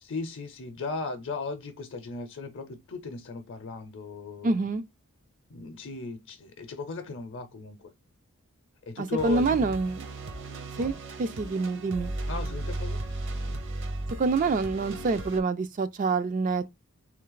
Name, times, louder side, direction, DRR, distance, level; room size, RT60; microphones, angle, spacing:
voice 1, 0.0-4.5 5.5-7.8 8.9-9.8 10.8-11.0 12.3-13.0, left 4 dB, 55° left, 0.6 m, -37 dB
voice 2, 4.4-4.8 9.0-10.1 10.8-10.9 11.2-12.1 14.2-16.7, right 3 dB, 35° right, 0.3 m, -26 dB
sound 1, 9.2-15.4, right 1 dB, 55° right, 0.7 m, -35 dB
3.3 x 3.1 x 3.8 m
head